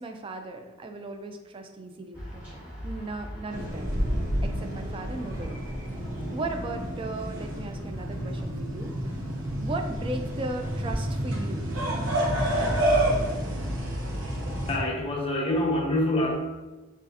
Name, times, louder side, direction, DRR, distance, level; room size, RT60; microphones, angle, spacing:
voice 1, 0.0-3.9 4.4-5.6 6.3-9.2 9.6-11.7, right 2 dB, 25° right, 5 dB, 0.4 m, -37 dB
sound 1, 2.1-8.8, equal, 5° right, 1.4 m, -43 dB
sound 2, 3.5-14.8, right 1 dB, 70° right, 0.9 m, -29 dB
voice 2, 14.7-16.3, left 1 dB, 25° left, -1 dB, 0.5 m, -26 dB
6.4 x 2.4 x 2.6 m, 1.2 s
head